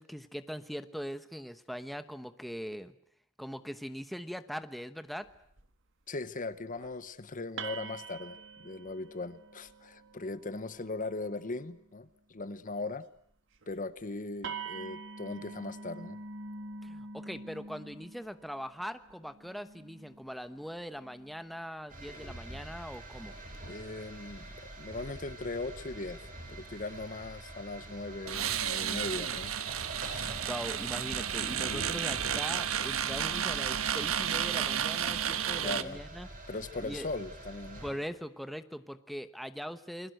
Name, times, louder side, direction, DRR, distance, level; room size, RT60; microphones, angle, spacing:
voice 1, 0.0-2.9 3.4-5.3 16.8-23.3 30.2-36.3 36.8-37.1 37.8-40.1, equal, ahead, 10 dB, 1.0 m, -41 dB
sound 1, 5.2-5.7 6.5-6.9 7.6-11.9 13.5-13.7 14.0-14.1 14.4-21.5 22.8-23.0 23.5-24.0, right 4 dB, 65° right, 2.0 m, -46 dB
voice 2, 6.1-13.1 13.7-16.2 22.1-22.3 23.6-26.2 26.5-29.5 31.7-32.0 35.6-36.0 36.5-37.8, left 3 dB, 40° left, 14 dB, 1.0 m, -39 dB
sound 2, 21.9-37.9, right 1 dB, 40° right, 7.0 m, -46 dB
sound 3, 28.3-35.8, right 9 dB, 90° right, 1.3 m, -32 dB
29.0 x 22.0 x 7.9 m, 0.68 s
head